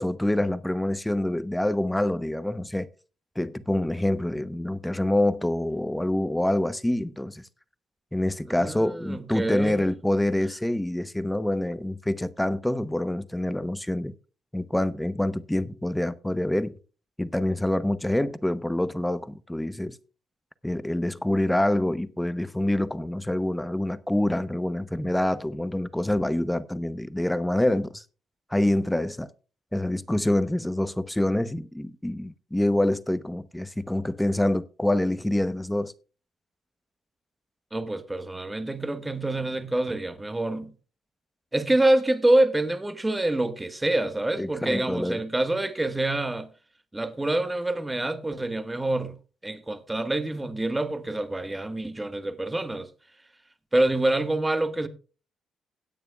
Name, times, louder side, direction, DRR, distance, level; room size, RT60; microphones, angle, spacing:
voice 1, 0.0-2.9 3.4-7.5 8.1-14.1 14.5-16.7 17.2-20.0 20.6-28.0 28.5-29.3 29.7-35.9 44.4-45.2, left 1 dB, 5° left, 0.9 m, -26 dB
voice 2, 8.5-9.8 37.7-40.7 41.5-46.5 46.9-49.1 49.4-52.9 53.7-54.9, right 1 dB, 15° right, 1.4 m, -26 dB
17.0 x 9.2 x 2.3 m
cardioid pair, 90°, 0 cm